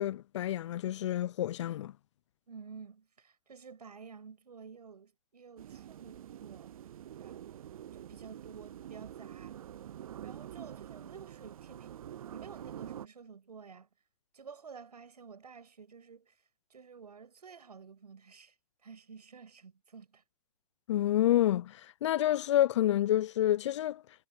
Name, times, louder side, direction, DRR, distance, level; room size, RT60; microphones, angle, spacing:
voice 1, 0.0-1.9 20.9-21.7 22.0-24.0, left 12 dB, 50° left, 0.4 m, -28 dB
voice 2, 2.5-6.7 7.2-7.5 7.9-9.6 10.2-11.9 12.3-13.9 14.3-16.4 16.7-18.5 18.8-20.2, right 5 dB, 80° right, 6.4 m, -51 dB
sound 1, 5.6-13.1, right 11 dB, 60° right, 0.6 m, -46 dB
hypercardioid pair, 135°, 20 cm